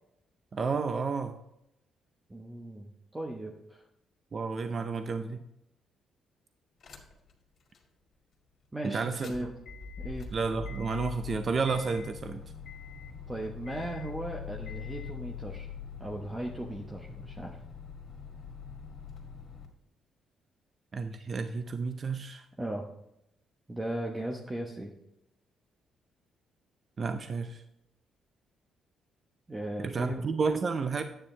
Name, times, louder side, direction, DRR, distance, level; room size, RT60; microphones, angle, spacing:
voice 1, 0.5-1.4 4.3-5.4 8.8-9.5 10.3-12.4 20.9-22.5 27.0-27.6 29.8-31.0, right 4 dB, 40° right, 8 dB, 0.6 m, -31 dB
voice 2, 2.3-3.8 8.7-9.5 10.0-10.3 13.3-15.7 16.0-17.6 22.6-22.9 23.7-24.9 29.5-30.2, right 1 dB, 15° right, 1 dB, 1.0 m, -37 dB
sound 1, 6.8-7.3 7.7-7.8 9.0-19.7, left 6 dB, 55° left, 2.2 m, -43 dB
9.8 x 8.8 x 3.3 m, 0.83 s
cardioid pair, 90°, 0 cm